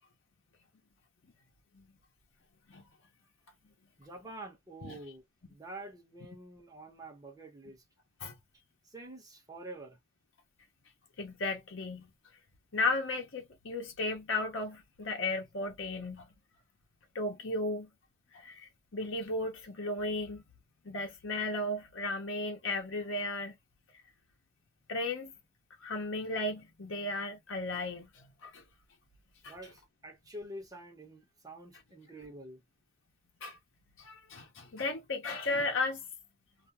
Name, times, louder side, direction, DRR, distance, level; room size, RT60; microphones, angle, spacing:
voice 1, 4.0-5.2 5.5-7.8 8.9-10.0 29.5-32.6, right 1 dB, 20° right, 1.0 m, -47 dB
voice 2, 11.2-12.1 12.7-16.3 17.1-17.9 18.3-20.4 20.8-23.6 24.9-25.3 25.8-28.6 29.4-29.6 33.4-33.6 34.0-36.0, left 2 dB, 90° left, 0.8 m, -35 dB
2.5 x 2.2 x 2.8 m
head